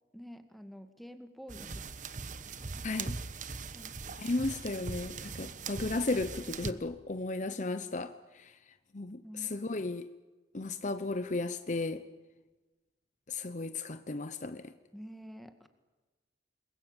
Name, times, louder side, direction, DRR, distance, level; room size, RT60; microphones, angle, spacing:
voice 1, 0.1-1.8 2.7-2.8 3.7-4.0 9.2-9.5 14.9-15.7, equal, ahead, 2.0 m, -48 dB
sound 1, 1.5-6.7, right 4 dB, 45° right, 1.2 m, -41 dB
voice 2, 2.8-3.2 4.1-8.5 8.9-10.1 10.5-12.0 13.3-14.7, left 2 dB, 45° left, 0.9 m, -35 dB
28.5 x 22.0 x 9.0 m
head